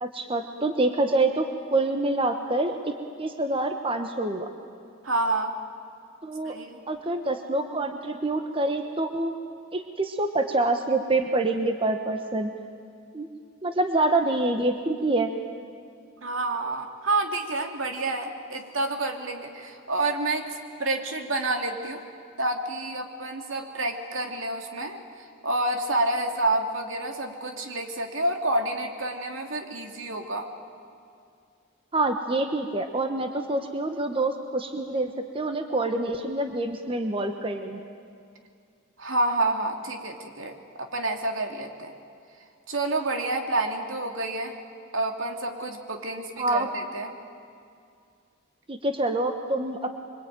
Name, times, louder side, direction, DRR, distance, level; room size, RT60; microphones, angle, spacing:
voice 1, 0.0-2.8 3.2-4.5 6.2-6.6 6.9-9.3 9.7-12.5 13.1-13.3 13.6-15.3 31.9-37.9 46.4-46.7 48.7-49.9, right 2 dB, 25° right, 6 dB, 1.2 m, -26 dB
voice 2, 5.0-5.5 6.4-6.8 16.2-22.0 22.4-30.5 39.0-41.9 42.7-44.6 44.9-47.1, right 2 dB, 75° right, 4 dB, 2.7 m, -29 dB
25.5 x 24.5 x 9.2 m, 2.4 s
head